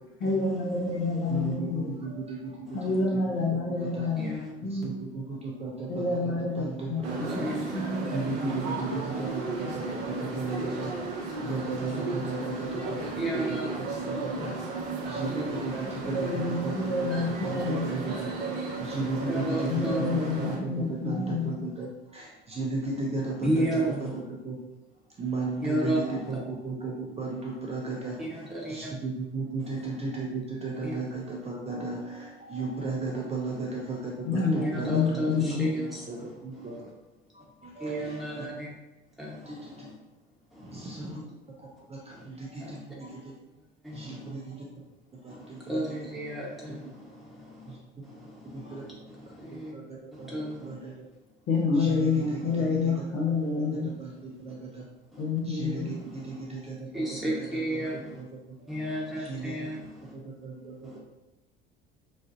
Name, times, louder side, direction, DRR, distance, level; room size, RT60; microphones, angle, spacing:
voice 1, 0.2-1.9 2.7-4.3 4.6-4.9 5.9-8.1 16.0-18.2 19.7-21.6 34.2-35.7 51.5-53.9 55.2-55.9, left 3 dB, 45° left, -2 dB, 0.9 m, -28 dB
voice 2, 1.3-3.2 3.5-4.1 4.6-7.5 8.1-13.0 13.3-16.7 17.0-18.3 18.8-24.6 25.2-28.4 28.7-35.5 35.7-36.8 37.3-38.5 39.4-39.9 40.7-41.2 41.6-43.3 43.9-44.6 45.2-45.9 46.7-46.8 47.7-47.8 48.5-48.8 49.5-50.4 50.6-51.0 51.7-53.0 53.6-54.8 55.4-58.7 59.2-59.6 60.1-61.0, right 3 dB, 20° right, -3 dB, 0.7 m, -35 dB
voice 3, 4.2-4.5 7.3-7.8 13.2-13.7 19.3-20.1 23.4-24.1 25.6-26.2 28.2-28.9 30.8-30.9 34.6-36.3 36.6-36.8 37.8-38.7 39.2-39.9 40.5-41.2 42.1-42.2 42.6-42.8 43.8-44.3 45.3-47.7 48.0-49.7 50.1-50.7 52.5-52.6 55.1-55.2 55.9-56.4 56.9-58.2 58.7-60.1 60.8-61.0, right 1 dB, ahead, -6 dB, 1.1 m, -33 dB
sound 1, 7.0-20.6, right 3 dB, 60° right, 0.8 m, -34 dB
4.1 x 2.4 x 2.6 m, 1.0 s
figure-of-eight pair, 60°, 30 cm